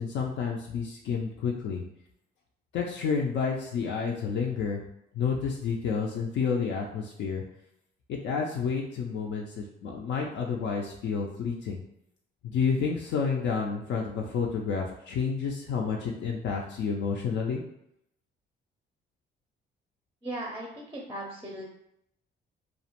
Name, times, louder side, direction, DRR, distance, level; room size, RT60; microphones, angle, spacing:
voice 1, 0.0-1.8 2.7-4.8 5.1-7.4 8.1-11.8 12.4-17.6, left 5 dB, 65° left, -1 dB, 0.4 m, -30 dB
voice 2, 20.2-21.7, right 1 dB, 10° right, -2 dB, 0.5 m, -37 dB
2.4 x 2.1 x 2.8 m, 0.76 s
cardioid pair, 90°, 20 cm